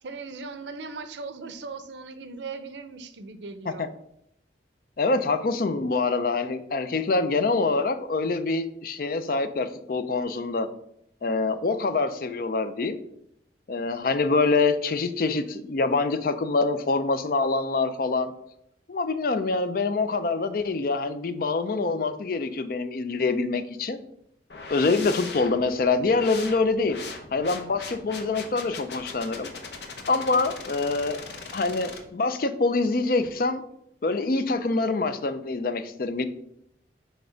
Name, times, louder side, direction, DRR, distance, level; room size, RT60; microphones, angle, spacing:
voice 1, 0.0-3.9, right 4 dB, 75° right, 11 dB, 0.6 m, -38 dB
voice 2, 5.0-10.7 11.2-13.0 13.7-18.3 18.9-24.0 24.7-27.0 27.3-29.5 30.1-31.2 31.5-33.6 34.0-36.2, left 3 dB, 50° left, 10 dB, 0.4 m, -25 dB
sound 1, 24.5-32.0, left 4 dB, 70° left, 0.9 m, -40 dB
6.4 x 3.4 x 5.0 m, 0.75 s
head